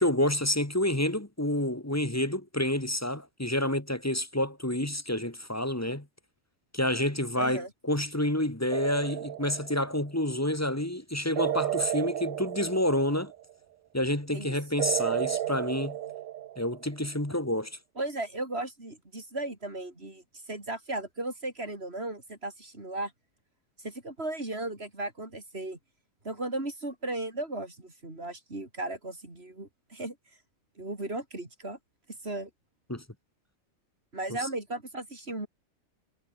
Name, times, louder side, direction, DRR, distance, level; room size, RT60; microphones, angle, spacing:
voice 1, 0.0-6.1 6.7-13.3 13.9-16.0 16.6-17.8 32.9-33.0, left 1 dB, 10° left, 2.0 m, -28 dB
voice 2, 7.4-7.7 14.3-14.6 18.0-23.1 23.8-25.8 26.2-30.2 30.8-31.8 32.2-32.5 34.1-35.5, right 2 dB, 50° right, 5.2 m, -36 dB
sonar submarine radar deepsea hydrogen skyline com, 8.7-10.1 11.4-13.5 14.8-16.9, right 12 dB, 75° right, 1.0 m, -33 dB
omnidirectional pair, 1.4 m